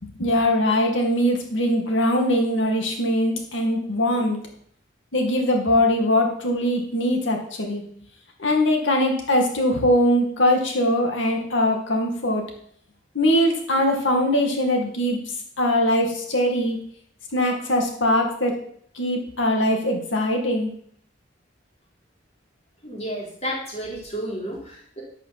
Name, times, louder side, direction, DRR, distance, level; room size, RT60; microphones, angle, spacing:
voice 1, 0.0-4.4 5.1-7.8 8.4-12.4 13.1-15.2 15.6-16.8 17.3-18.6 18.9-20.7, left 1 dB, 80° left, 2 dB, 2.2 m, -21 dB
voice 2, 22.8-25.0, equal, 35° left, -4 dB, 4.0 m, -31 dB
11.5 x 6.1 x 5.8 m, 0.63 s
head